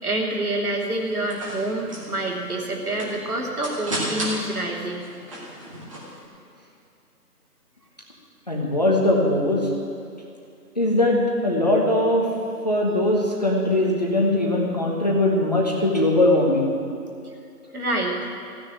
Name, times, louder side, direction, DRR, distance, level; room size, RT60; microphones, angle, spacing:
voice 1, 0.0-5.0 17.7-18.2, right 1 dB, 60° right, 0 dB, 2.9 m, -27 dB
sound 1, 0.9-6.2, right 1 dB, 20° right, 1.7 m, -34 dB
voice 2, 8.5-9.6 10.8-12.3 12.6-16.7, left 1 dB, 25° left, -2 dB, 1.1 m, -20 dB
15.5 x 6.7 x 9.9 m, 2.5 s
figure-of-eight pair, 165°, 49 cm